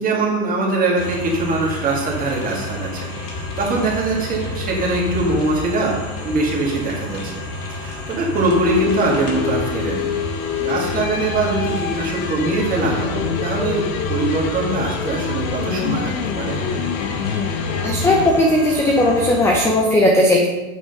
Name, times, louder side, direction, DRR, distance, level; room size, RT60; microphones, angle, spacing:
voice 1, 0.0-6.0 6.2-7.4 7.8-10.1 10.6-16.6, right 2 dB, 20° right, -2 dB, 2.0 m, -22 dB
sound 1, 1.0-19.7, left 2 dB, 45° left, 2.2 m, -30 dB
sound 2, 8.6-18.5, left 8 dB, 85° left, 0.9 m, -26 dB
voice 2, 17.8-20.5, left 1 dB, 5° left, 0 dB, 0.5 m, -16 dB
7.9 x 4.9 x 5.3 m, 1.1 s
supercardioid pair, 155°, 40 cm